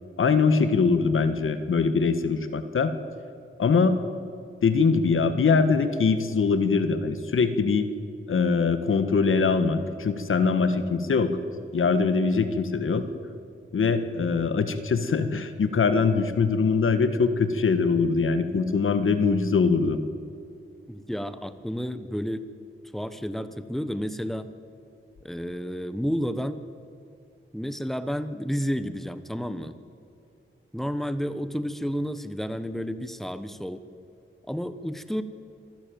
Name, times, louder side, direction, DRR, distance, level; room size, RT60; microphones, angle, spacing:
voice 1, 0.2-2.9 3.6-4.0 4.6-7.9 8.3-11.3 11.7-13.0 13.7-20.0, left 5 dB, 75° left, 10 dB, 1.6 m, -22 dB
voice 2, 20.9-22.4 22.9-24.5 25.2-26.6 27.5-29.7 30.7-33.8 34.5-35.2, equal, ahead, 11 dB, 1.2 m, -31 dB
26.0 x 12.0 x 9.3 m, 2.5 s
wide cardioid pair, 100°, 21 cm